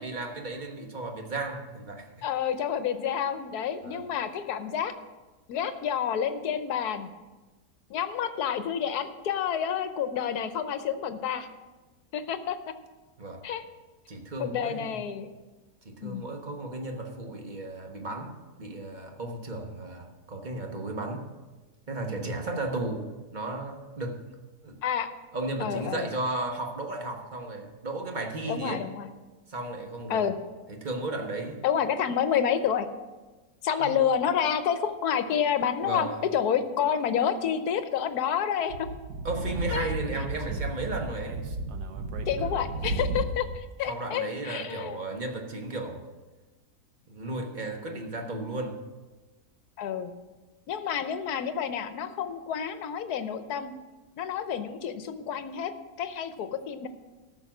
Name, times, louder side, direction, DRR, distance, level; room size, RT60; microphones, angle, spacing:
voice 1, 0.0-2.1 3.8-4.0 13.2-13.4 14.1-15.1 15.8-21.3 21.9-23.0 23.3-24.2 24.6-24.8 25.3-28.8 29.5-30.3 30.7-31.6 33.8-34.0 35.8-36.2 39.2-41.4 43.9-46.1 47.1-48.8, right 2 dB, 30° right, 3 dB, 1.2 m, -34 dB
voice 2, 2.2-4.9 5.5-7.1 7.9-11.5 12.1-12.7 13.4-13.6 14.4-15.3 16.0-16.2 24.8-25.1 25.6-26.1 28.5-29.1 30.1-30.3 31.6-32.9 33.6-38.9 39.7-39.9 42.3-45.0 49.8-50.1 50.7-53.7 54.2-56.9, left 8 dB, 75° left, 10 dB, 1.3 m, -29 dB
Speech / Wind, 38.7-43.6, right 2 dB, 85° right, 1.4 m, -33 dB
13.5 x 6.3 x 6.0 m, 1.2 s
omnidirectional pair, 1.7 m